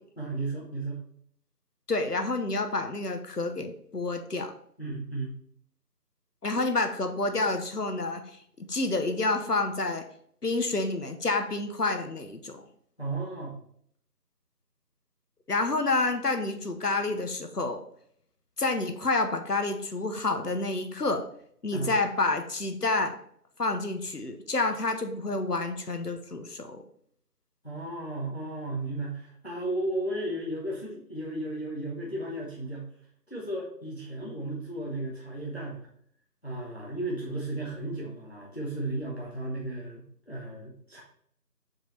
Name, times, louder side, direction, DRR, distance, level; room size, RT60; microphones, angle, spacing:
voice 1, 0.2-1.0 4.8-5.4 13.0-13.6 21.7-21.9 27.6-32.9 33.3-35.9 36.4-41.0, right 2 dB, 40° left, -3 dB, 1.0 m, -34 dB
voice 2, 1.9-4.5 6.4-10.0 10.4-12.6 15.5-17.8 18.6-21.2 21.6-23.1 23.6-26.8, left 3 dB, 70° left, 7 dB, 1.0 m, -29 dB
5.0 x 4.7 x 4.0 m, 0.65 s
figure-of-eight pair, 180°, 48 cm